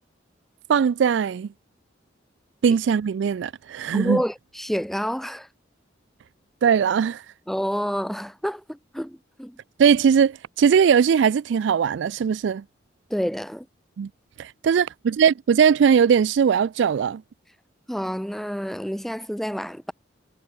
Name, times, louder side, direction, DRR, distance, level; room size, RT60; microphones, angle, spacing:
voice 1, 0.7-1.5 2.6-4.2 6.6-7.2 9.8-12.6 14.0-14.1 14.4-17.2, right 7 dB, 70° right, 0.3 m, -20 dB
voice 2, 3.9-5.5 7.5-9.6 13.1-13.7 17.9-19.9, equal, ahead, 2.7 m, -28 dB
head